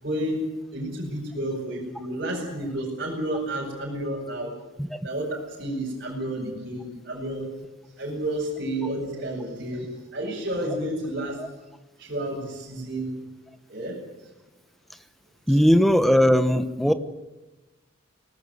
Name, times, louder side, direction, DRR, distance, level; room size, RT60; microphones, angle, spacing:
voice 1, 0.0-0.4 0.7-4.5 5.0-5.3 5.6-7.5 8.0-11.4 12.0-13.1 13.7-14.0 15.5-15.6, right 1 dB, 45° right, -6 dB, 6.8 m, -31 dB
voice 2, 15.5-16.9, equal, ahead, 10 dB, 1.2 m, -19 dB
24.5 x 19.0 x 9.7 m, 1.1 s
head